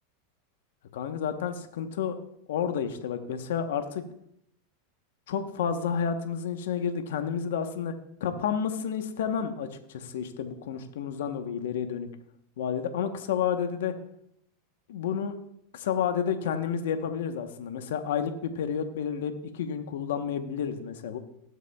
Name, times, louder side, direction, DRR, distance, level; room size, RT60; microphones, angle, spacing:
voice 1, 0.9-2.2 2.5-4.0 5.3-7.9 8.2-12.1 12.6-13.9 14.9-15.3 15.7-21.2, left 7 dB, 75° left, 7 dB, 1.0 m, -30 dB
20.0 x 8.1 x 2.3 m, 0.74 s
hypercardioid pair, 105°, 0 cm